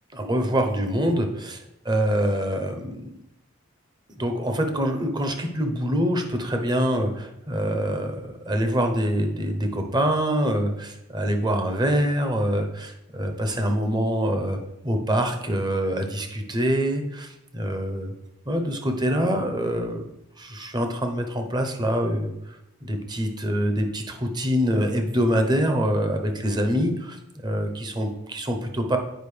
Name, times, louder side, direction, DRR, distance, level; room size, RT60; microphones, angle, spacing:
voice 1, 0.1-1.6 1.9-3.1 4.2-14.6 14.8-18.1 18.5-20.0 20.4-29.0, equal, 20° right, 5 dB, 0.8 m, -25 dB
8.8 x 5.1 x 3.3 m, 0.84 s
head